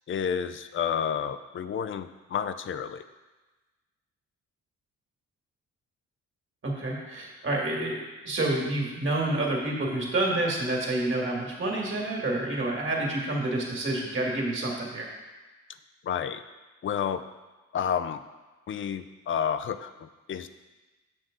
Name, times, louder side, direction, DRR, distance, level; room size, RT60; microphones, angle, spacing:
voice 1, 0.1-3.0 16.0-16.4 16.8-17.2 17.7-18.2 18.7-20.5, left 8 dB, 45° left, 11 dB, 0.5 m, -30 dB
voice 2, 6.6-15.1, right 2 dB, 40° right, -2 dB, 2.1 m, -28 dB
7.5 x 6.1 x 3.8 m, 1.2 s
cardioid pair, 90°, 30 cm